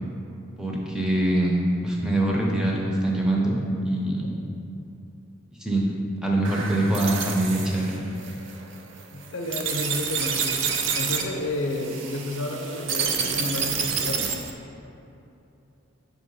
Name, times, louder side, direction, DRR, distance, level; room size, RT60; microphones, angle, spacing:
voice 1, 0.6-4.3 5.6-5.9 6.2-8.0, right 1 dB, 5° right, -3 dB, 0.6 m, -24 dB
sound 1, 6.4-14.5, right 6 dB, 65° right, 0.5 m, -29 dB
voice 2, 9.1-10.6 10.9-14.3, left 2 dB, 60° left, 2 dB, 0.6 m, -31 dB
6.4 x 3.5 x 5.3 m, 2.8 s
head